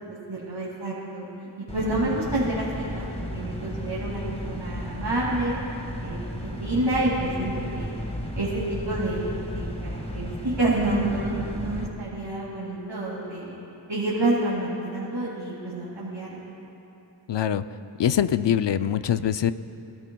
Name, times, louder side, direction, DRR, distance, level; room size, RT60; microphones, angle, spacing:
voice 1, 0.1-5.5 6.0-7.9 8.3-13.6 13.9-16.4, right 1 dB, 90° right, -9 dB, 2.4 m, -28 dB
sound 1, 1.7-11.9, equal, 15° left, 1.3 m, -34 dB
voice 2, 17.3-17.6 18.0-19.5, left 9 dB, 75° left, 12 dB, 0.5 m, -23 dB
23.0 x 13.5 x 2.3 m, 2.9 s
wide cardioid pair, 40°, 43 cm